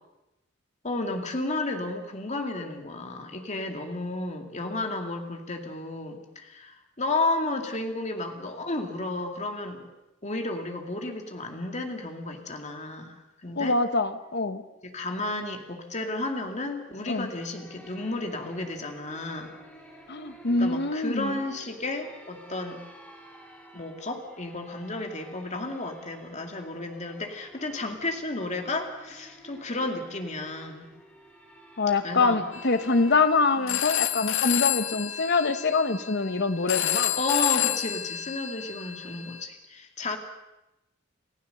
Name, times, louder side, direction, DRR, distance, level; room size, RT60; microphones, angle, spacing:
voice 1, 0.8-9.9 10.2-13.8 14.8-19.5 20.6-22.8 23.7-30.9 32.0-32.5 33.6-33.8 37.2-40.2, left 2 dB, 35° left, 4 dB, 2.4 m, -32 dB
voice 2, 13.6-14.6 17.1-17.3 20.1-21.4 31.8-37.2, left 3 dB, 60° left, 10 dB, 1.2 m, -25 dB
sound 1, 17.1-33.2, equal, 10° left, 3.6 m, -51 dB
Telephone, 32.5-39.4, left 12 dB, 90° left, 1.4 m, -30 dB
29.0 x 15.5 x 6.8 m, 0.96 s
head